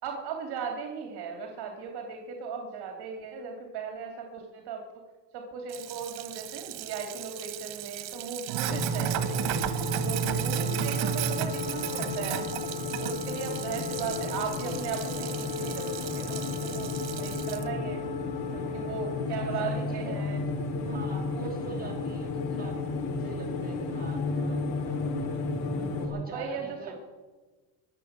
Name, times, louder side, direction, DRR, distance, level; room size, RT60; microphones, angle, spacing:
voice 1, 0.0-4.8 5.3-12.5 13.0-18.0 18.5-20.4 26.3-26.9, right 5 dB, 60° right, 2 dB, 3.0 m, -37 dB
Sink (filling or washing), 5.7-17.6, right 11 dB, 80° right, 1.5 m, -34 dB
sound 1, 8.5-19.2, left 6 dB, 65° left, 4.7 m, -39 dB
sound 2, 8.7-26.1, left 3 dB, 85° left, 3.7 m, -33 dB
voice 2, 19.3-20.2 20.8-25.2 25.7-26.9, right 3 dB, 20° right, 0 dB, 5.5 m, -44 dB
23.0 x 7.7 x 8.1 m, 1.3 s
cardioid pair, 115°, 44 cm